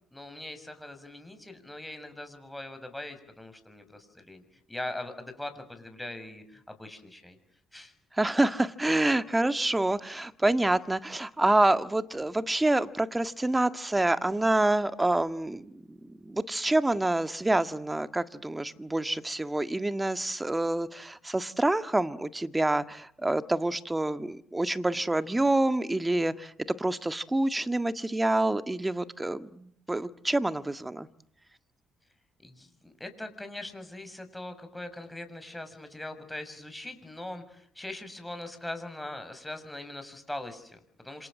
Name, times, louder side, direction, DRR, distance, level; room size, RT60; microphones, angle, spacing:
voice 1, 0.1-4.4 4.7-7.4 7.7-7.9 32.4-41.3, left 1 dB, 10° left, 8 dB, 6.8 m, -41 dB
voice 2, 8.1-26.5 26.8-31.1, right 2 dB, 15° right, 11 dB, 1.8 m, -27 dB
27.5 x 27.0 x 7.8 m, 0.66 s
supercardioid pair, 60°, 0 cm